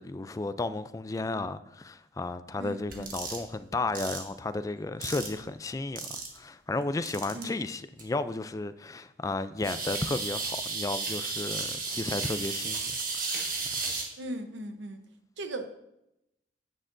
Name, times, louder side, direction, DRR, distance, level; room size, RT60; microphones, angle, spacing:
voice 1, 0.0-6.0 6.3-12.9 13.2-13.4 13.8-13.9, left 2 dB, 20° left, 0.3 m, -33 dB
voice 2, 2.6-3.1 7.3-7.5 14.2-15.0 15.4-15.7, right 1 dB, 85° right, 0.9 m, -38 dB
sound 1, 2.9-3.4 3.9-4.2 5.0-5.4 6.0-6.4 7.1-7.4 8.0-8.1 9.6-14.0, right 4 dB, 50° right, 1.5 m, -33 dB
9.7 x 8.7 x 2.6 m
head